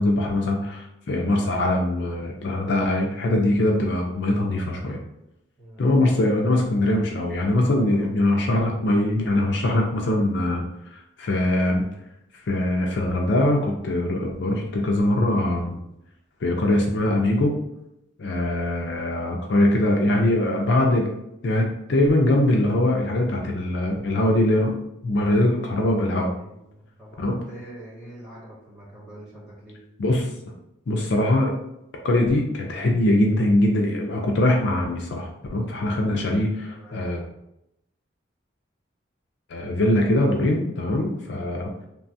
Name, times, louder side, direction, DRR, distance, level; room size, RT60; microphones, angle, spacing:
voice 1, 0.0-5.0 5.8-10.6 10.9-11.9 12.3-15.8 16.4-17.5 18.2-21.1 21.4-24.8 25.0-26.3 27.2-27.4 30.0-30.3 30.9-31.6 32.0-37.2 39.5-41.7, left 1 dB, 60° left, 1 dB, 0.4 m, -22 dB
voice 2, 5.6-6.0 7.8-8.1 26.3-29.8 36.7-37.1, right 1 dB, ahead, -10 dB, 1.4 m, -45 dB
3.0 x 2.3 x 2.6 m, 0.83 s
head